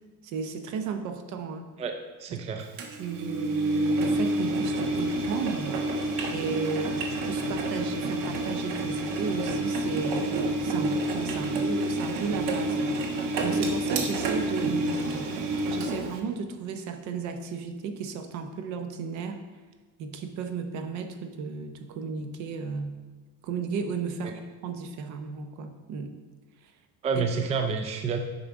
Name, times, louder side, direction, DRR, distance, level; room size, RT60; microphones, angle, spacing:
voice 1, 0.2-1.7 2.3-2.5 3.0-5.8 6.3-19.4 20.0-23.0 23.4-26.1 27.2-27.3, right 5 dB, 60° right, 7 dB, 0.8 m, -34 dB
voice 2, 2.2-2.7 24.2-24.3 27.0-28.2, right 5 dB, 20° right, 5 dB, 0.4 m, -29 dB
Engine, 2.8-16.2, right 1 dB, 80° right, 1.1 m, -28 dB
8.8 x 5.4 x 3.6 m, 1.3 s
cardioid pair, 150°, 33 cm